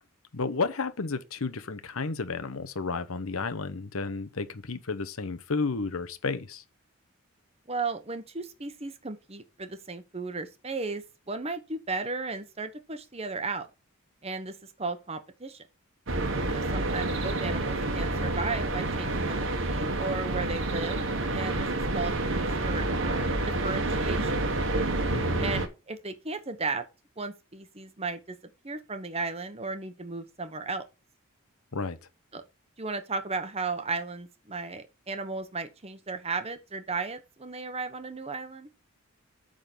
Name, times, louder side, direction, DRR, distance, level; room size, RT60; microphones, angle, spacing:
voice 1, 0.3-6.6 25.1-25.5 31.7-32.0, left 4 dB, 75° left, 0.9 m, -32 dB
voice 2, 7.7-13.7 14.2-15.6 16.5-21.7 21.9-23.2 23.5-24.4 25.4-26.8 27.2-28.4 28.6-30.8 32.3-32.4 32.8-38.7, right 3 dB, 30° right, 1.0 m, -35 dB
sound 1, 16.1-25.7, right 2 dB, 60° right, 1.4 m, -28 dB
8.7 x 3.9 x 6.7 m
head